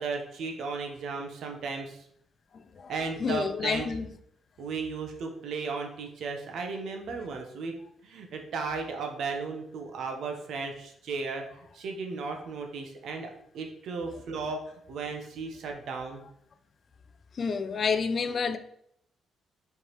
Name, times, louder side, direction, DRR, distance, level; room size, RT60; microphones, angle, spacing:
voice 1, 0.0-2.0 2.9-3.9 4.6-7.7 8.0-11.4 11.7-14.6 14.9-16.2, right 4 dB, 70° right, 0.8 m, -35 dB
voice 2, 2.5-2.9 3.2-4.1 17.3-18.6, left 5 dB, 50° left, 0.4 m, -29 dB
4.5 x 3.4 x 3.0 m
cardioid pair, 90°, 0 cm